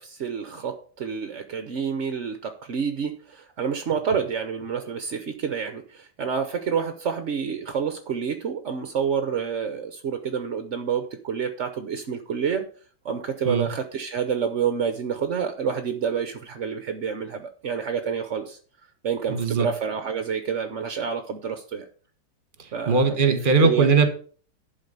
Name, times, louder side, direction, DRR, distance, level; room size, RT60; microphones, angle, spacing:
voice 1, 0.0-12.6 13.0-18.6 19.0-21.9 22.7-23.9, right 7 dB, 60° right, 8 dB, 0.8 m, -28 dB
voice 2, 19.3-19.7 22.9-24.1, right 4 dB, 30° right, 7 dB, 1.2 m, -19 dB
11.0 x 4.0 x 6.8 m, 0.43 s
omnidirectional pair, 2.2 m